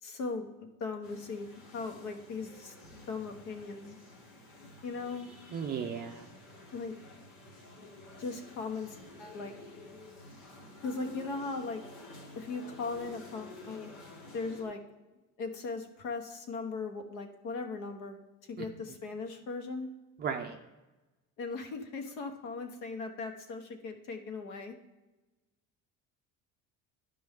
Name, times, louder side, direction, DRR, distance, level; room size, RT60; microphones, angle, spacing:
voice 1, 0.0-1.5 1.7-4.0 4.8-5.3 6.7-7.0 8.1-9.5 10.8-11.8 12.3-13.9 14.3-14.8 15.4-18.2 18.5-19.9 21.4-24.7, left 4 dB, 60° left, 5 dB, 1.3 m, -38 dB
sound 1, 1.0-14.6, left 2 dB, 80° left, 2.6 m, -51 dB
voice 2, 5.5-6.2 20.2-20.6, right 7 dB, 30° right, 4 dB, 0.5 m, -35 dB
12.0 x 5.3 x 3.6 m, 1.1 s
cardioid pair, 165°, 34 cm